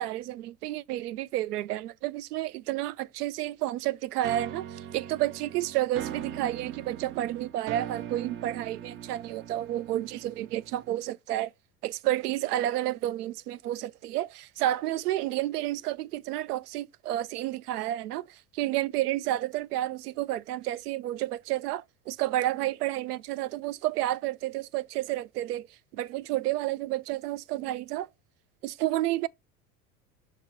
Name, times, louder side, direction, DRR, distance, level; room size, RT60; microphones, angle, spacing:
voice 1, 0.0-11.5 11.8-25.7 25.9-28.1 28.6-29.3, right 14 dB, 85° right, 0.5 m, -30 dB
sound 1, 4.2-11.1, right 10 dB, 30° right, 0.4 m, -41 dB
6.4 x 3.1 x 5.1 m
hypercardioid pair, 90°, 45 cm